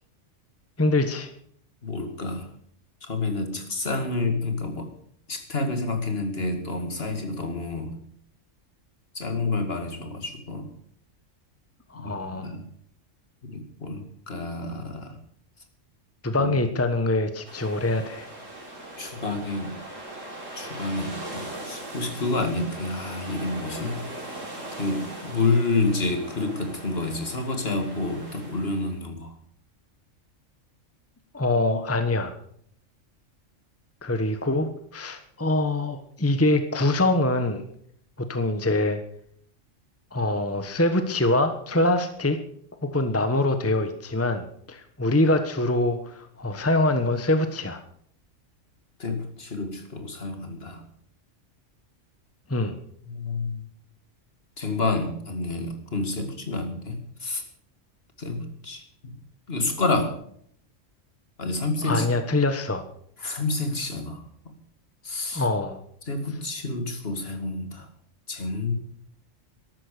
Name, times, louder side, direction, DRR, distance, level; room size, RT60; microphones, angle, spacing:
voice 1, 0.8-1.3 11.9-12.5 16.2-18.3 31.3-32.4 34.0-37.7 38.2-39.0 40.1-42.4 42.8-47.8 52.5-52.8 61.8-62.9 65.3-65.8, left 2 dB, 10° left, 8 dB, 1.1 m, -24 dB
voice 2, 1.8-2.5 3.0-4.9 5.3-7.9 9.1-10.7 11.9-12.7 13.4-15.2 16.3-16.5 19.0-19.7 20.6-24.0 24.7-29.3 49.0-50.8 53.0-53.7 54.6-57.4 58.2-59.1 59.5-60.2 61.4-62.1 63.2-64.5 65.0-65.4 66.1-67.9 68.3-68.7, left 3 dB, 50° left, 6 dB, 2.5 m, -29 dB
sound 1, 17.4-29.0, right 1 dB, 75° right, 4.5 m, -40 dB
13.5 x 12.0 x 6.7 m, 0.65 s
omnidirectional pair, 1.3 m